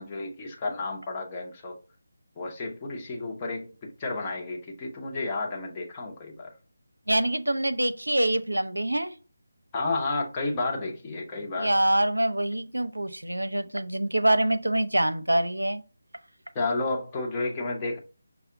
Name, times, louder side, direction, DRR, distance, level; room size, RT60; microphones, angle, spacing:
voice 1, 0.0-1.7 2.4-6.5 9.7-11.8 16.5-18.0, left 3 dB, 20° left, 0.8 m, -31 dB
voice 2, 7.1-9.1 11.6-15.8, right 1 dB, 90° right, 0.6 m, -25 dB
5.6 x 2.0 x 3.7 m
figure-of-eight pair, 160°, 0 cm